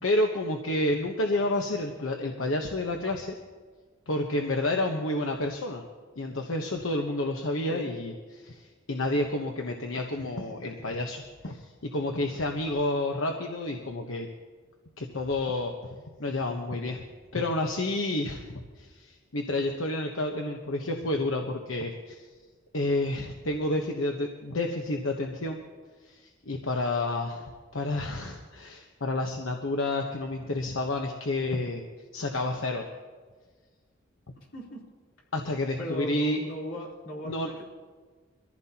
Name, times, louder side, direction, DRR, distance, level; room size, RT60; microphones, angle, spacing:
voice 1, 0.0-3.3 4.1-5.8 6.2-8.6 8.9-11.6 11.9-14.3 15.0-15.7 16.2-17.0 17.3-22.3 22.7-25.6 26.1-26.2 26.5-27.4 27.7-31.8 32.1-32.8 35.3-36.4 37.2-37.5, left 2 dB, 85° left, 2 dB, 1.1 m, -29 dB
voice 2, 34.5-34.8 35.8-37.7, equal, 65° left, -4 dB, 3.7 m, -37 dB
23.5 x 15.0 x 2.9 m, 1.5 s
head